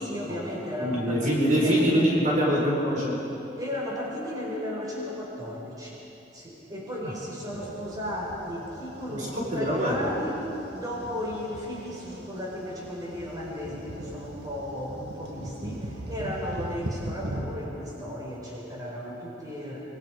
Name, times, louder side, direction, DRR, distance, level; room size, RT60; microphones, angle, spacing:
voice 1, 0.0-2.1 3.6-6.0 6.3-10.4 10.7-19.8, left 1 dB, 20° right, -4 dB, 5.2 m, -35 dB
voice 2, 0.8-3.2 7.0-7.1 9.1-10.1, equal, 45° right, -4 dB, 5.0 m, -24 dB
sound 1, 7.5-17.4, right 1 dB, 65° right, 2.2 m, -40 dB
25.5 x 24.0 x 5.2 m, 3.0 s
head